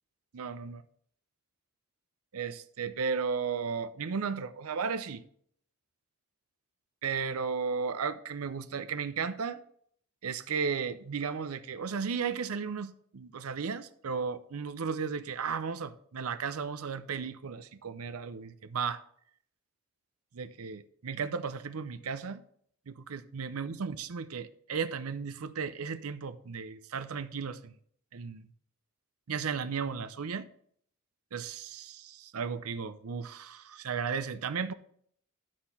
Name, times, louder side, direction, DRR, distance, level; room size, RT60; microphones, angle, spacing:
voice 1, 0.3-0.8 2.3-5.2 7.0-9.6 10.2-19.0 20.3-22.4 22.9-27.7 28.1-28.5 29.3-30.5 31.3-34.7, right 5 dB, 85° right, 0.6 m, -35 dB
11.5 x 4.3 x 5.6 m
head